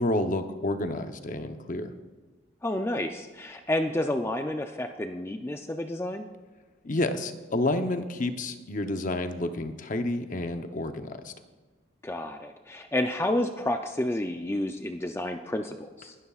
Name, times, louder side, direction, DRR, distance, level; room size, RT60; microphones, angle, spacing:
voice 1, 0.0-1.9 6.8-11.3, left 2 dB, 40° left, 7 dB, 0.8 m, -29 dB
voice 2, 2.6-6.2 12.0-16.1, left 1 dB, 15° left, 5 dB, 0.4 m, -30 dB
21.0 x 12.5 x 2.4 m, 1.3 s
head